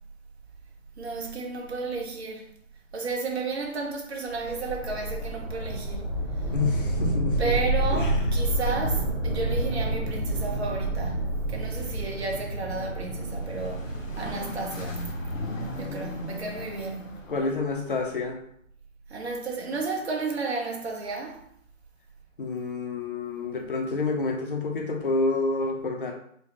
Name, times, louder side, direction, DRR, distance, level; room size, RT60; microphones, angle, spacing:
voice 1, 1.0-2.5 2.9-6.1 7.4-15.4 15.8-17.0 19.1-21.4, right 3 dB, 55° right, 1.0 m, -32 dB
sound 1, 4.3-17.4, right 1 dB, 10° left, 0.7 m, -29 dB
voice 2, 6.5-7.5 7.9-8.2 17.3-18.4 22.4-26.1, left 3 dB, 45° left, 0.6 m, -28 dB
sound 2, 11.6-17.5, left 2 dB, 75° left, 0.9 m, -39 dB
4.4 x 2.2 x 3.0 m
hypercardioid pair, 160°, 39 cm